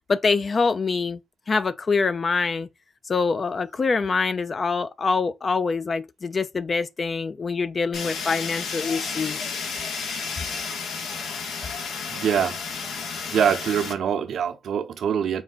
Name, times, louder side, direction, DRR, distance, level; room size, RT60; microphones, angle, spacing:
voice 1, 0.1-1.2 1.5-2.7 3.1-9.4, left 4 dB, 45° left, 0.4 m, -25 dB
Fire, 7.9-13.9, left 5 dB, 85° left, 0.8 m, -32 dB
voice 2, 12.1-12.6 13.3-15.4, right 8 dB, 75° right, 0.7 m, -24 dB
4.6 x 2.2 x 3.8 m
cardioid pair, 60°, 0 cm